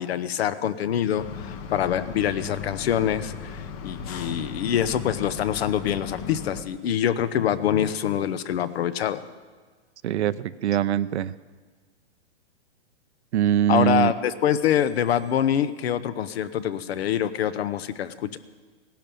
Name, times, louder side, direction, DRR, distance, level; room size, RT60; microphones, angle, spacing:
voice 1, 0.0-9.2 13.7-18.4, left 9 dB, 60° left, 15 dB, 1.0 m, -25 dB
sound 1, 1.2-6.6, left 6 dB, 30° left, 1.0 m, -36 dB
voice 2, 10.0-11.3 13.3-14.1, right 11 dB, 70° right, 14 dB, 0.7 m, -22 dB
17.0 x 12.0 x 7.0 m, 1.5 s
hypercardioid pair, 150°, 35 cm